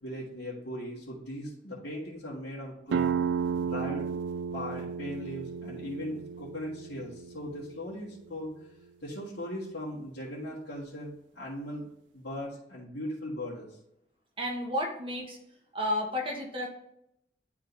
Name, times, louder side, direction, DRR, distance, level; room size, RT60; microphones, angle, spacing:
voice 1, 0.0-3.1 3.6-4.1 4.5-8.5 9.0-11.9 12.1-13.7, equal, 90° left, -8 dB, 1.8 m, -38 dB
sound 1, 2.9-8.3, right 7 dB, 85° right, 0.3 m, -33 dB
voice 2, 14.4-15.4 15.7-16.7, left 1 dB, 30° right, 0 dB, 1.4 m, -31 dB
11.0 x 3.7 x 2.7 m, 0.77 s
head